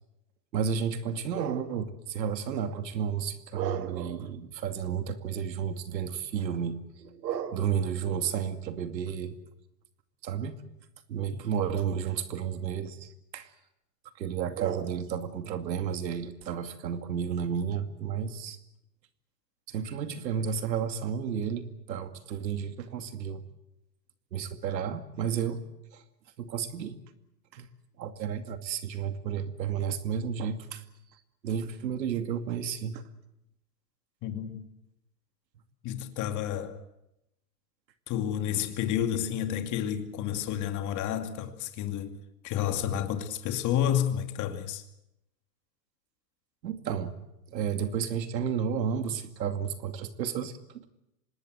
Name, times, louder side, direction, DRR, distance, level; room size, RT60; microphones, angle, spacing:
voice 1, 0.5-9.4 10.2-10.6 11.1-13.5 14.2-18.6 19.7-23.4 24.3-25.6 25.9-26.0 26.4-27.0 27.5-27.7 28.0-30.8 31.4-33.0 46.6-47.2 47.5-50.9, right 7 dB, 80° right, 2.5 m, -32 dB
voice 2, 34.2-34.6 35.8-36.8 38.1-44.8, left 10 dB, 35° left, 2.5 m, -30 dB
25.5 x 19.5 x 8.1 m
hypercardioid pair, 130°, 50 cm